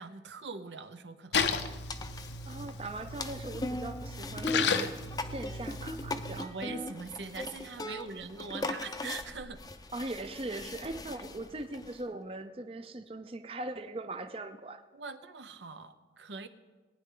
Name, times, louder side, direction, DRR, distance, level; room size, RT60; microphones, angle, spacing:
voice 1, 0.0-1.6 6.4-9.6 14.9-16.5, right 4 dB, 85° right, 10 dB, 0.7 m, -42 dB
Splash splatter, 1.3-6.4, left 5 dB, 75° left, 0.7 m, -34 dB
sound 1, 1.9-12.0, left 2 dB, 20° left, 0.5 m, -39 dB
voice 2, 2.5-5.0 5.2-6.5 7.8-8.0 9.9-14.8, right 2 dB, 30° right, 8 dB, 0.5 m, -40 dB
19.0 x 9.5 x 3.8 m, 1.3 s
head